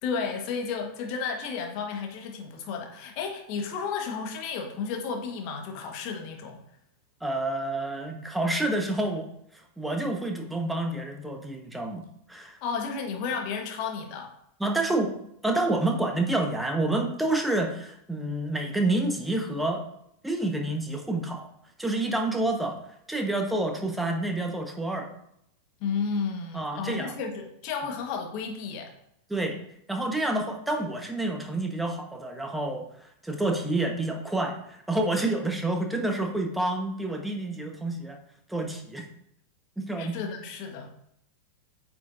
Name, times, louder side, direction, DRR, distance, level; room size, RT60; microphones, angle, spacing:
voice 1, 0.0-6.6 12.6-14.3 25.8-28.9 40.0-40.9, left 5 dB, 45° left, 3 dB, 1.3 m, -32 dB
voice 2, 7.2-9.3 9.8-12.0 12.3-12.6 14.6-15.1 15.4-19.8 20.2-21.5 21.8-22.8 23.1-25.1 26.5-27.2 29.3-29.6 29.9-38.2 38.5-39.0 39.8-40.2, right 2 dB, 5° right, 2 dB, 1.2 m, -28 dB
9.0 x 5.9 x 2.6 m, 0.75 s
figure-of-eight pair, 90°, 0 cm